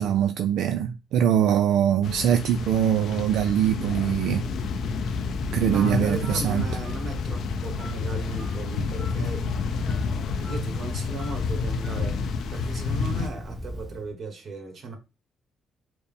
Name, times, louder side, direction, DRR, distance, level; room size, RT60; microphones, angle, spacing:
voice 1, 0.0-4.4 5.5-6.6, right 9 dB, 80° right, 0.3 m, -23 dB
sound 1, 2.0-13.3, left 5 dB, 70° left, 0.4 m, -30 dB
Telephone, 4.4-14.1, equal, 10° right, 0.8 m, -37 dB
voice 2, 5.6-10.0 10.4-12.2 12.5-15.0, right 3 dB, 55° right, 1.3 m, -36 dB
4.5 x 2.0 x 3.4 m
cardioid pair, 90°, 0 cm